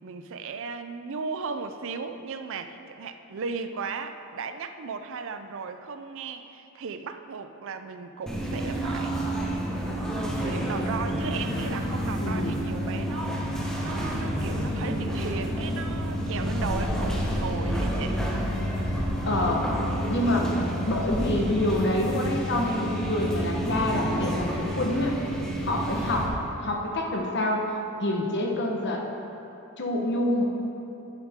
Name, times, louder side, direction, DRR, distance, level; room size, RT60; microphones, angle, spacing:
voice 1, 0.0-9.2 10.1-18.2, right 5 dB, 60° right, 8 dB, 0.5 m, -36 dB
sound 1, 8.3-26.3, equal, 5° left, 1.3 m, -29 dB
voice 2, 12.2-12.6 19.2-19.7 20.1-25.2 25.6-26.3 26.6-27.7 28.0-29.1 29.8-30.4, left 1 dB, 55° left, 1 dB, 1.2 m, -27 dB
11.0 x 9.6 x 3.6 m, 2.9 s
head